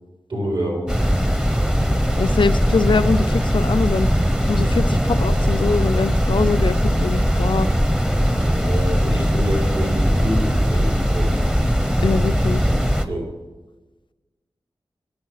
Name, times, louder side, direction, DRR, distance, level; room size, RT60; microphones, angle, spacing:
voice 1, 0.3-0.9 6.4-6.5 8.5-11.3 13.1-13.3, equal, 60° right, -3 dB, 4.3 m, -27 dB
sound 1, 0.9-13.0, equal, 5° right, 1.0 m, -19 dB
voice 2, 2.2-4.1 4.5-7.7 9.3-9.5 12.0-12.6, left 4 dB, 55° left, 12 dB, 0.5 m, -23 dB
10.5 x 8.2 x 6.4 m, 1.2 s
cardioid pair, 50°, 10 cm